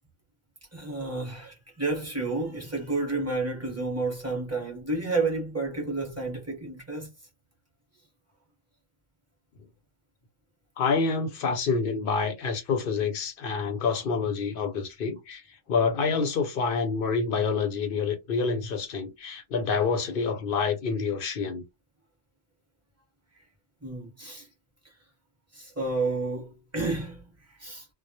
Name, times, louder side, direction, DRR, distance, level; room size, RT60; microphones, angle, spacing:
voice 1, 0.7-7.1 23.8-24.5 25.5-27.9, right 3 dB, 15° right, 0.8 m, -31 dB
voice 2, 10.8-21.6, left 5 dB, 65° left, 0.7 m, -27 dB
2.2 x 2.0 x 2.8 m
omnidirectional pair, 1.1 m